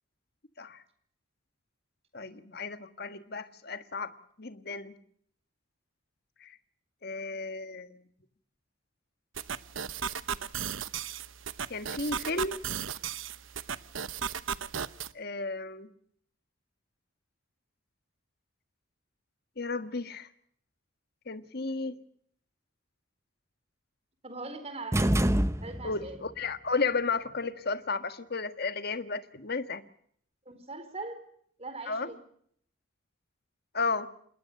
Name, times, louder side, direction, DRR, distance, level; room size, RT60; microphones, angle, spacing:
voice 1, 2.1-4.9 6.4-6.5 7.0-7.9 11.7-12.6 15.1-15.9 19.6-20.3 21.3-22.0 25.8-29.8 31.9-32.1 33.7-34.1, left 4 dB, 50° left, 10 dB, 1.6 m, -33 dB
sound 1, 9.4-15.1, right 8 dB, 75° right, 1.0 m, -36 dB
voice 2, 24.2-25.1 25.6-26.2 30.5-31.2 31.6-32.2, right 3 dB, 30° right, 10 dB, 4.2 m, -41 dB
sound 2, 24.9-26.2, right 1 dB, 15° right, 0.9 m, -26 dB
27.5 x 20.5 x 6.6 m, 0.66 s
head